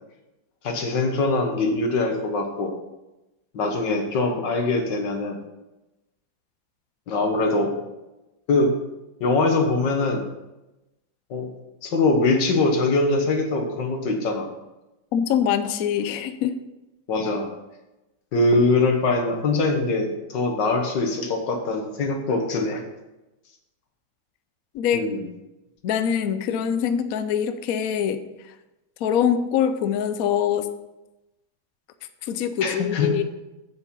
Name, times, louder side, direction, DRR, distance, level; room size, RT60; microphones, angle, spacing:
voice 1, 0.6-2.7 3.5-5.4 7.1-7.7 8.5-8.7 9.2-10.3 11.3-11.5 11.8-14.5 17.1-17.5 18.3-22.8 24.9-25.3 32.6-33.1, left 3 dB, 90° left, 3 dB, 2.0 m, -22 dB
voice 2, 15.1-16.5 24.7-25.1 25.8-28.2 29.0-30.7 32.2-33.2, left 8 dB, 65° left, 10 dB, 1.0 m, -23 dB
7.9 x 7.2 x 5.3 m, 1.0 s
omnidirectional pair, 1.9 m